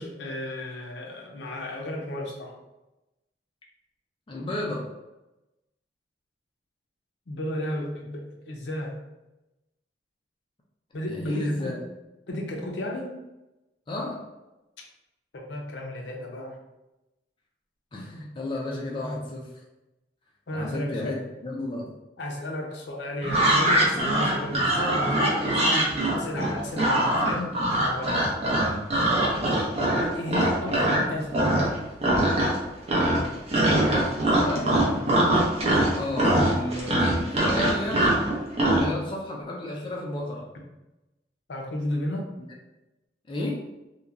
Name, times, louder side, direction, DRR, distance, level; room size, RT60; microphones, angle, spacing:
voice 1, 0.0-2.5 7.3-9.0 10.9-11.8 12.3-13.2 15.3-16.6 20.5-21.1 22.2-28.3 30.1-31.8 34.9-35.2 41.5-42.3, left 1 dB, 75° left, 0 dB, 0.6 m, -33 dB
voice 2, 4.3-4.9 11.1-11.8 13.9-14.2 17.9-19.5 20.5-21.9 28.5-28.8 29.4-29.7 33.5-34.8 36.0-38.2 38.7-40.5 43.3-43.7, left 1 dB, 30° left, -2 dB, 0.4 m, -32 dB
sound 1, 23.2-31.0 31.3-31.8 32.0-32.6 32.9-38.9, right 1 dB, 35° right, 0.6 m, -22 dB
3.0 x 2.2 x 2.4 m, 0.98 s
head